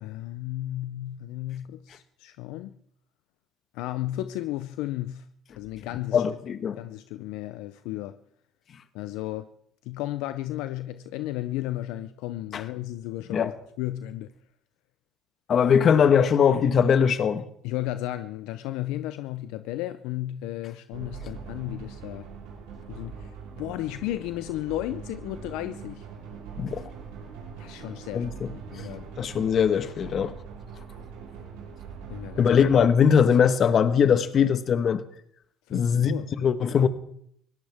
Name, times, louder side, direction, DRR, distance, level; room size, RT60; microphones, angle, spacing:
voice 1, 0.0-2.8 3.7-5.3 5.6-6.2 6.8-8.2 8.9-9.5 9.8-13.5 13.8-14.3 17.6-22.3 22.9-26.1 27.6-28.3 28.7-29.1 32.1-32.4 35.7-36.3, left 15 dB, 80° left, 0.6 m, -34 dB
voice 2, 6.1-6.8 12.5-12.6 13.3-13.5 15.5-17.4 26.6-26.9 28.1-28.5 28.8-28.9 29.2-30.3 32.4-35.0 35.7-36.9, left 7 dB, 50° left, 1.4 m, -21 dB
sound 1, 20.9-32.9, right 6 dB, 85° right, 5.6 m, -42 dB
21.5 x 17.5 x 3.6 m
supercardioid pair, 80°, 0 cm